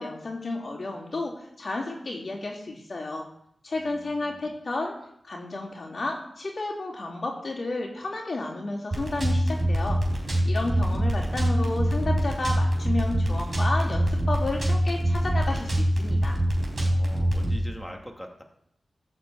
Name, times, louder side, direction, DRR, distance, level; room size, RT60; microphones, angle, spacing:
voice 1, 0.0-3.2 3.6-4.9 5.2-10.0 10.4-16.4, left 2 dB, 60° left, -9 dB, 3.3 m, -32 dB
voice 2, 3.8-4.5 16.9-18.4, equal, 5° left, 1 dB, 2.5 m, -43 dB
sound 1, 8.9-17.6, equal, 40° right, 3.9 m, -24 dB
15.0 x 5.1 x 8.2 m, 0.72 s
cardioid pair, 65°, 0 cm